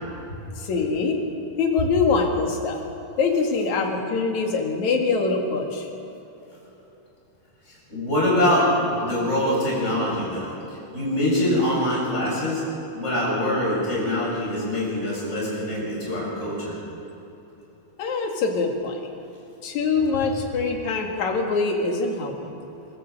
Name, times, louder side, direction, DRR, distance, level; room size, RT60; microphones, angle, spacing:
voice 1, 0.6-1.2 1.6-2.8 3.2-5.9 18.0-19.0 19.6-22.5, left 4 dB, 50° left, 1 dB, 2.7 m, -24 dB
voice 2, 7.9-10.5 10.9-12.6 12.9-16.8, left 1 dB, 15° left, -5 dB, 6.8 m, -24 dB
24.5 x 14.0 x 7.7 m, 3.0 s
omnidirectional pair, 4.9 m